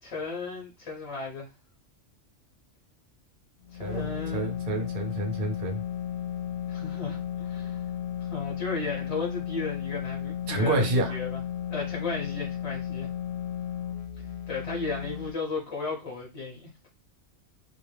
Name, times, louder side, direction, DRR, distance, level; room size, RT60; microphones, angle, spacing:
voice 1, 0.0-1.5 3.7-4.5 6.7-7.8 8.2-11.4 11.7-13.1 14.5-16.9, left 3 dB, 35° left, 0.7 m, -35 dB
sound 1, 3.6-15.3, left 9 dB, 70° left, 0.8 m, -34 dB
voice 2, 3.8-5.8 10.5-11.1, right 2 dB, 60° right, 0.8 m, -29 dB
2.2 x 2.0 x 3.1 m
omnidirectional pair, 1.2 m